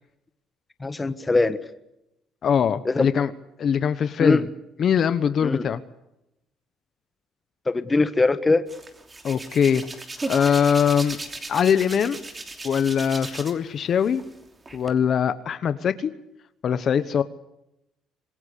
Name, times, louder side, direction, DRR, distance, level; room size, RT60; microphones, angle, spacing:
voice 1, 0.8-1.6 2.8-3.1 4.2-4.4 5.4-5.7 7.7-8.7, left 3 dB, 15° left, 11 dB, 1.4 m, -22 dB
voice 2, 2.4-3.3 3.6-4.5 4.8-5.8 9.2-9.8 10.3-11.2 11.5-12.2 12.6-14.2 14.7-16.1 16.6-17.2, left 7 dB, 40° left, 12 dB, 1.1 m, -22 dB
Hands, 8.7-13.7 14.0-14.9, right 2 dB, 15° right, 3.0 m, -36 dB
26.0 x 21.5 x 8.4 m, 0.87 s
cardioid pair, 145°, 0 cm